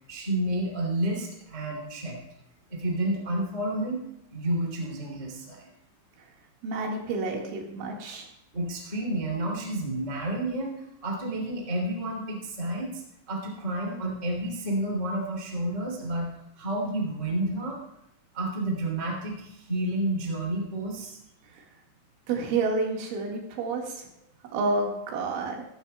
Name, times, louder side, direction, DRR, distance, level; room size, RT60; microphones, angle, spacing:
voice 1, 0.1-2.2 2.7-4.0 4.3-5.6 8.5-10.8 11.0-17.8 18.3-21.2, right 1 dB, 20° right, -2 dB, 2.0 m, -30 dB
voice 2, 6.6-8.3 21.5-21.6 22.3-24.1 24.5-25.6, right 3 dB, 75° right, 0 dB, 4.1 m, -29 dB
14.5 x 14.5 x 2.2 m, 0.80 s
omnidirectional pair, 5.7 m